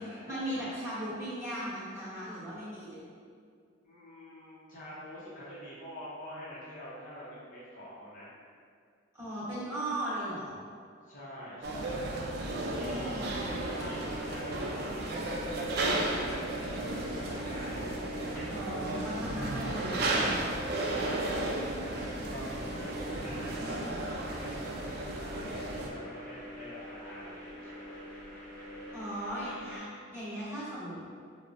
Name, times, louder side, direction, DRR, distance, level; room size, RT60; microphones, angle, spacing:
voice 1, 0.0-3.0 9.1-10.6 12.8-13.3 18.5-20.4 28.9-29.9 30.1-31.0, right 1 dB, 15° right, -12 dB, 1.1 m, -37 dB
voice 2, 3.8-8.3 11.0-18.2 20.8-25.0 25.3-28.0, equal, 45° left, -8 dB, 0.7 m, -46 dB
sound 1, 11.6-25.9, right 2 dB, 50° right, 0.4 m, -34 dB
sound 2, 13.4-29.8, equal, 5° left, 0.7 m, -45 dB
4.6 x 2.1 x 2.5 m, 2.2 s
head